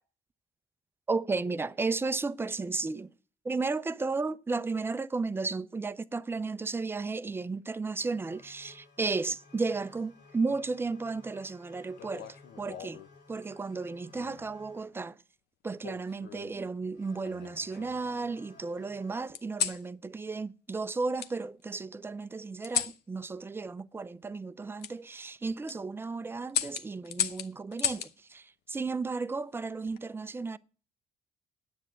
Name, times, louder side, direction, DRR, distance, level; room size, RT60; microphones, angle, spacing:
voice 1, 1.1-3.1 3.4-12.3 12.6-13.0 13.3-15.2 15.6-30.6, right 4 dB, 15° right, 0.5 m, -34 dB
sound 1, 8.0-14.9 16.7-19.1, left 4 dB, 90° left, 3.3 m, -57 dB
sound 2, 12.0-13.1 14.1-14.5 15.8-16.6 17.2-18.1 19.3-19.8 21.2-21.3 22.6-23.0 24.8-24.9 25.5-25.8 26.5-28.1 29.6-30.0, left 10 dB, 70° left, 0.9 m, -35 dB
9.9 x 7.8 x 7.5 m
cardioid pair, 110°, 17 cm